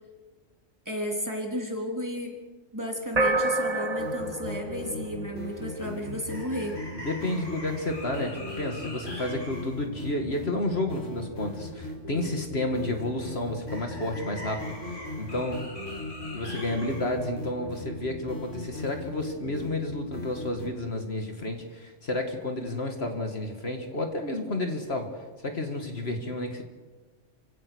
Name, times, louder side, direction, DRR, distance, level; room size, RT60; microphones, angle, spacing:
voice 1, 0.9-2.4 2.7-6.8, equal, 15° right, 0 dB, 3.4 m, -33 dB
sound 1, 3.2-5.8, right 2 dB, 35° right, 1.1 m, -28 dB
sound 2, 4.0-20.7, left 2 dB, 75° left, 5.0 m, -37 dB
voice 2, 6.9-15.6 16.3-25.1 25.4-26.6, left 1 dB, 55° left, 4 dB, 2.1 m, -31 dB
28.5 x 17.0 x 6.3 m, 1.3 s
omnidirectional pair, 1.3 m